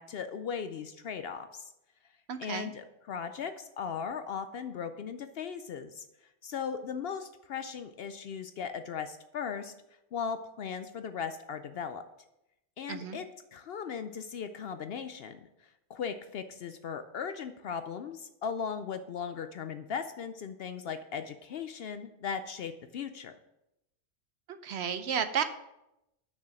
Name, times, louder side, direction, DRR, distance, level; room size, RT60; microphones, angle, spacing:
voice 1, 0.0-1.7 2.4-6.0 6.4-9.7 10.1-12.0 12.8-13.3 13.5-15.4 15.9-23.3, left 6 dB, 65° left, 10 dB, 0.7 m, -38 dB
voice 2, 2.3-2.7 12.9-13.2 24.5-25.4, right 7 dB, 65° right, 10 dB, 0.8 m, -32 dB
6.4 x 6.2 x 5.8 m, 0.88 s
omnidirectional pair, 1.3 m